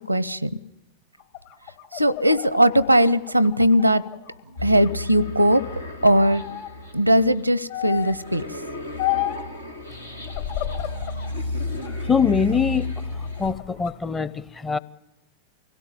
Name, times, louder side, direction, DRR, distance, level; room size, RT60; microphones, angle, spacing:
voice 1, 0.1-0.5 1.9-4.0 4.6-5.6 6.0-6.4 6.9-8.4, equal, 90° right, 23 dB, 0.7 m, -19 dB
sound 1, 1.2-4.4 4.8-5.7 6.1-6.7 7.7-8.2 9.0-9.5 10.3-11.3 11.8-12.8 13.2-13.9, left 15 dB, 60° left, 3.0 m, -32 dB
sound 2, 4.6-13.5, left 2 dB, 85° left, 1.8 m, -33 dB
voice 2, 11.9-12.9 13.2-14.8, left 6 dB, 15° left, 17 dB, 0.7 m, -23 dB
24.5 x 17.0 x 8.9 m, 1.0 s
figure-of-eight pair, 90°, 0 cm